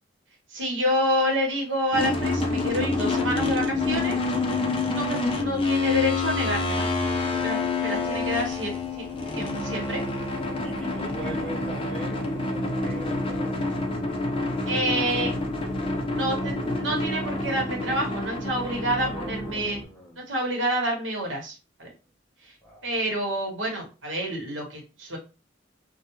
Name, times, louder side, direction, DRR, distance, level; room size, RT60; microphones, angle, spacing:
voice 1, 0.5-4.2 4.9-6.9 7.4-9.0 9.3-10.0 14.7-15.3 16.0-19.8 20.3-21.9 22.4-22.5 22.8-25.2, equal, 75° right, 0 dB, 1.0 m, -28 dB
sound 1, 1.9-19.8, left 3 dB, 30° left, 0.4 m, -28 dB
voice 2, 7.3-8.5 10.6-13.6 18.9-20.3 22.6-22.9, equal, 5° left, -3 dB, 0.8 m, -41 dB
2.2 x 2.2 x 2.9 m, 0.31 s
head